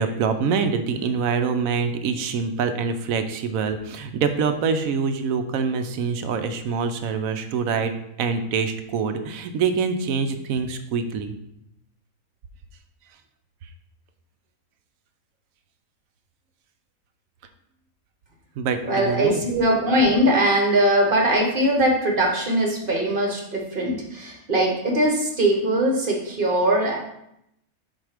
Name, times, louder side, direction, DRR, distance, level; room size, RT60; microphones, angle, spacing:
voice 1, 0.0-7.9 8.2-11.3 18.6-19.4, right 5 dB, 75° right, 8 dB, 1.0 m, -25 dB
voice 2, 18.8-27.0, right 1 dB, 40° right, 0 dB, 1.1 m, -21 dB
7.4 x 2.8 x 5.0 m, 0.80 s
omnidirectional pair, 1.5 m